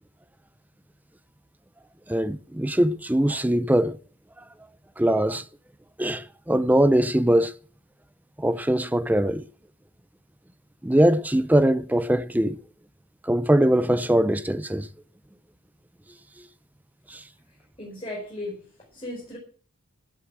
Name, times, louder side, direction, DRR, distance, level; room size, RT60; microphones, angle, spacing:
voice 1, 2.1-4.0 5.0-5.4 6.0-7.5 8.4-9.4 10.8-12.6 13.2-14.9 17.1-17.2, right 1 dB, 5° right, 0.5 m, -21 dB
voice 2, 17.5-19.4, left 1 dB, 25° left, 5.0 m, -37 dB
12.0 x 8.2 x 8.4 m
head